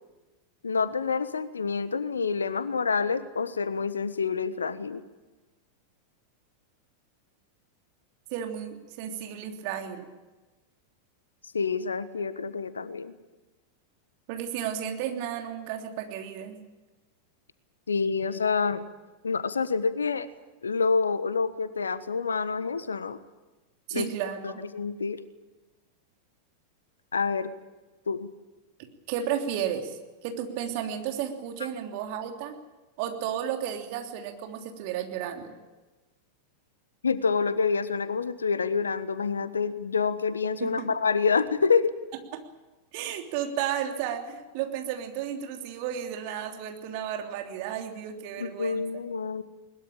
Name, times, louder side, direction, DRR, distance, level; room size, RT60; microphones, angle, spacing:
voice 1, 0.6-5.0 11.5-13.1 17.9-18.8 19.2-20.3 20.6-23.2 23.9-24.1 24.4-25.2 27.1-27.5 28.1-28.3 37.0-41.9 48.4-49.4, left 5 dB, 75° left, 14 dB, 1.3 m, -27 dB
voice 2, 8.3-10.1 14.3-16.6 23.9-24.6 28.8-32.6 33.0-35.5 40.6-40.9 42.3-42.4 42.9-48.8, right 9 dB, 45° right, 3 dB, 3.2 m, -33 dB
21.0 x 21.0 x 8.8 m, 1.2 s
figure-of-eight pair, 90°, 0 cm